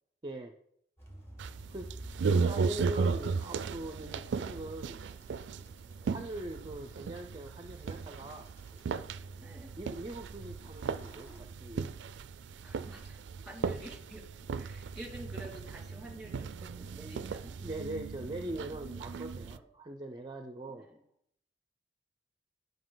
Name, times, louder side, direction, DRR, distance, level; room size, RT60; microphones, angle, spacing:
voice 1, 0.2-0.6 1.7-2.0 2.3-5.0 6.1-8.5 9.8-11.9 17.6-20.9, right 1 dB, 25° right, 6 dB, 0.5 m, -41 dB
sound 1, 1.0-11.4, equal, 15° left, 1.7 m, -54 dB
sound 2, 1.4-19.6, right 5 dB, 85° right, 0.4 m, -36 dB
voice 2, 9.4-9.8 12.6-17.8 18.6-19.1 19.4-19.7 20.7-21.0, right 1 dB, 5° right, 0 dB, 2.2 m, -49 dB
11.0 x 5.3 x 3.9 m, 0.71 s
head